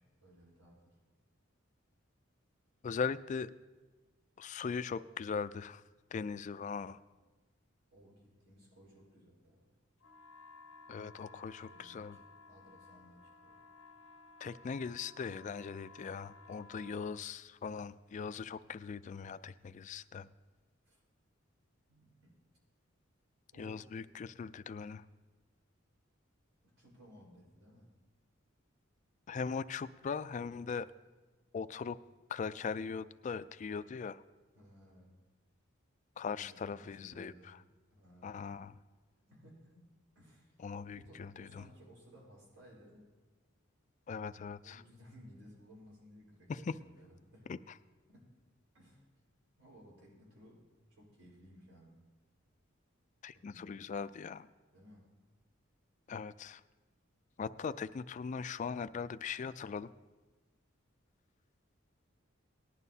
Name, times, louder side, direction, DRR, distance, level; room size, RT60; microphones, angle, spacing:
voice 1, 0.2-1.0 7.9-9.7 11.6-13.6 16.8-17.3 20.9-21.0 21.9-22.4 23.5-23.9 26.6-27.9 34.5-35.2 36.3-37.6 37.9-38.6 39.3-40.5 40.9-43.0 44.6-47.5 48.1-48.3 48.7-49.2 49.6-52.0 53.3-53.9 54.7-55.1, equal, 75° right, -3 dB, 4.5 m, -59 dB
voice 2, 2.8-3.5 4.4-5.8 6.1-7.0 10.9-12.2 14.4-20.3 23.6-25.0 29.3-30.9 31.5-32.0 32.3-34.2 36.2-37.6 38.2-38.7 40.6-41.6 44.1-44.8 46.7-46.8 47.5-47.6 53.2-54.5 56.1-56.6 57.4-59.9, left 5 dB, 35° left, 13 dB, 0.3 m, -40 dB
sound 1, 10.0-17.2, left 3 dB, 80° left, 0.7 m, -57 dB
19.0 x 11.0 x 2.8 m, 1.3 s
head